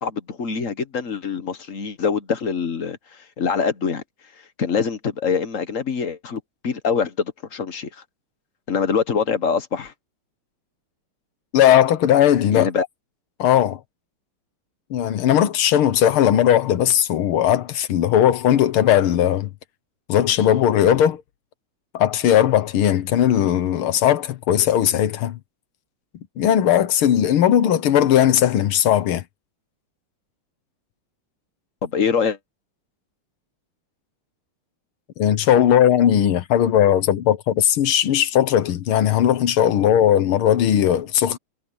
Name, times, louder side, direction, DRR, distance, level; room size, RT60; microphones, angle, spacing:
voice 1, 0.0-4.0 4.6-8.0 8.7-9.9 12.5-12.9 31.8-32.4, left 6 dB, 45° left, 1.4 m, -24 dB
voice 2, 11.5-12.7 13.4-13.8 14.9-19.5 20.1-21.2 21.9-25.4 26.4-29.2 35.2-41.4, left 10 dB, 75° left, 1.9 m, -18 dB
omnidirectional pair, 2.4 m